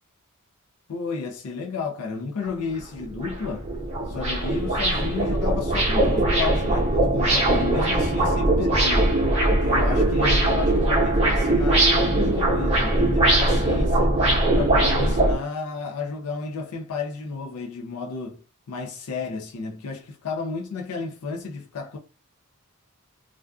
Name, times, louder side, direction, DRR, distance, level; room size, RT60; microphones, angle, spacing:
voice 1, 0.9-3.7 4.1-9.1 9.5-14.1 14.5-18.4 18.7-22.0, left 4 dB, 80° left, 0.4 m, -32 dB
sound 1, 2.4-2.5 3.0-15.4, right 1 dB, 30° right, 0.8 m, -21 dB
2.4 x 2.3 x 2.3 m
head